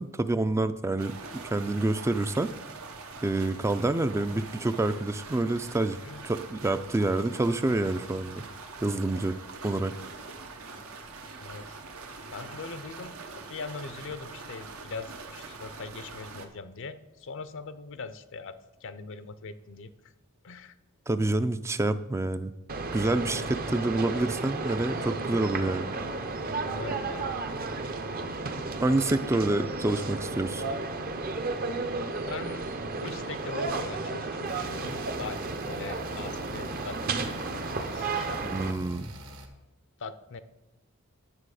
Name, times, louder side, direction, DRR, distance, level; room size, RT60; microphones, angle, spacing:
voice 1, 0.0-2.5 3.2-6.0 6.2-8.4 8.8-9.4 9.6-9.9 21.1-22.5 22.9-25.9 28.8-30.6 38.4-39.1, right 2 dB, 15° right, 12 dB, 0.3 m, -27 dB
sound 1, 1.0-16.5, right 4 dB, 80° right, 1.0 m, -44 dB
voice 2, 6.0-6.4 11.4-11.8 12.3-19.9 20.4-20.8 26.6-27.3 28.0-28.4 32.3-32.7 33.0-38.4 40.0-40.4, left 4 dB, 65° left, 13 dB, 0.6 m, -41 dB
sound 2, 22.7-38.7, right 3 dB, 45° right, 0.7 m, -33 dB
sound 3, 34.5-39.5, equal, 65° right, 1.3 m, -46 dB
9.7 x 6.8 x 4.9 m, 1.0 s
head